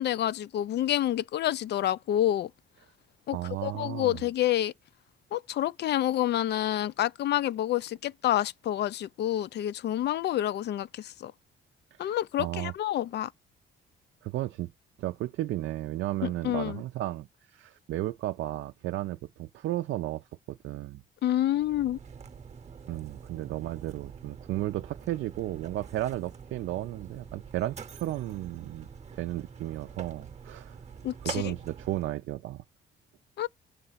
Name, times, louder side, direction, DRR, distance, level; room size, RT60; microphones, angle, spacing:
voice 1, 0.0-2.5 3.3-4.7 5.3-11.3 12.0-13.3 16.2-16.8 21.2-22.0 31.0-31.5 33.4-33.5, left 12 dB, 60° left, 0.4 m, -28 dB
voice 2, 3.3-4.2 12.0-12.7 14.2-14.7 15.0-21.0 22.9-30.8 31.2-32.6, right 15 dB, 75° right, 0.5 m, -34 dB
Mechanisms, 21.5-32.2, right 6 dB, 35° right, 0.9 m, -45 dB
6.7 x 3.3 x 5.6 m
cardioid pair, 90°, 20 cm